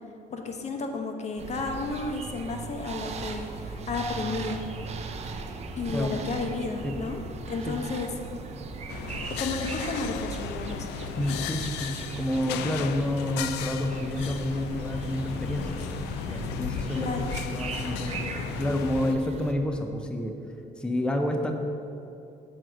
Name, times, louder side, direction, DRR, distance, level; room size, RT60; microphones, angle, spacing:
voice 1, 0.3-4.6 5.8-7.2 7.5-8.1 9.4-10.9 16.9-17.3, left 3 dB, 40° left, 4 dB, 0.9 m, -32 dB
sound 1, 1.4-19.5, right 4 dB, 40° right, 0.6 m, -38 dB
sound 2, 4.4-16.2, left 4 dB, 25° left, 1.2 m, -49 dB
sound 3, 8.9-19.1, left 9 dB, 85° left, 0.4 m, -36 dB
voice 2, 11.2-15.7 16.3-20.3 20.8-21.5, left 1 dB, 5° left, 4 dB, 0.5 m, -29 dB
6.3 x 4.6 x 6.3 m, 2.7 s
cardioid pair, 110°, 17 cm